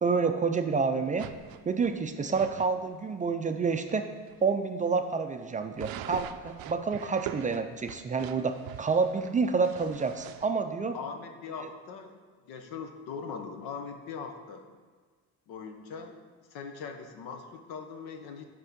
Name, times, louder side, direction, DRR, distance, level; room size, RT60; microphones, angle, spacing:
voice 1, 0.0-1.3 1.7-4.1 4.4-8.5 8.8-11.0 11.6-11.7, right 5 dB, 20° right, 6 dB, 0.3 m, -28 dB
sound 1, 1.2-2.7 3.2-3.3 3.7-3.9 4.3-4.4 5.8-10.5, right 11 dB, 75° right, 0.5 m, -43 dB
voice 2, 10.9-12.1 12.5-14.6 15.5-16.2 16.5-18.5, left 5 dB, 85° left, 6 dB, 0.9 m, -40 dB
9.0 x 3.6 x 5.2 m, 1.5 s
cardioid pair, 115°, 36 cm